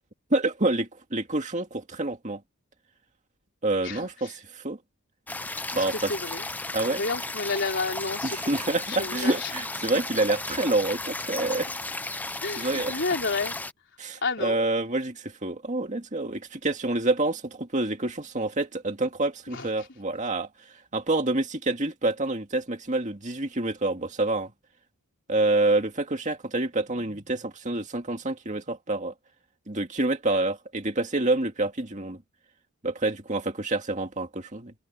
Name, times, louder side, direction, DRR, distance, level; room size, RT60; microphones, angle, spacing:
voice 1, 0.3-2.4 3.6-4.8 5.8-6.1 6.7-7.0 8.2-11.8 12.6-13.0 14.0-20.5 20.9-24.5 25.3-29.1 29.7-32.2 32.8-34.7, right 2 dB, 35° right, 2.1 m, -27 dB
voice 2, 3.8-4.3 5.7-6.5 6.9-9.5 9.8-10.0 12.4-13.6 14.2-14.6 19.5-19.7, left 3 dB, 55° left, 4.2 m, -31 dB
sound 1, 5.3-13.7, left 2 dB, 5° left, 0.5 m, -34 dB
head